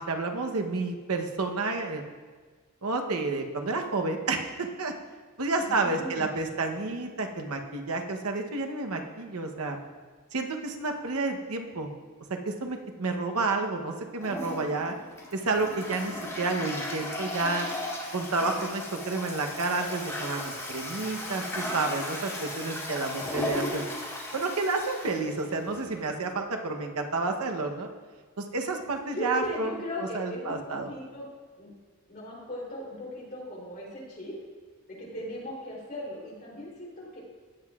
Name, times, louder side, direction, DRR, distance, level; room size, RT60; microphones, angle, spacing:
voice 1, 0.0-2.0 2.8-4.9 5.4-9.8 10.3-11.9 12.4-15.0 15.3-17.7 18.1-23.9 24.3-27.9 28.4-29.7 30.1-30.9, right 3 dB, 90° right, 4 dB, 0.9 m, -30 dB
voice 2, 5.6-6.2 29.1-31.2 31.5-31.7 32.1-34.3 35.0-37.2, left 1 dB, 45° left, -5 dB, 3.2 m, -38 dB
Toilet flush, 14.2-26.0, left 1 dB, 15° left, 1.9 m, -36 dB
16.5 x 7.8 x 2.4 m, 1.5 s
head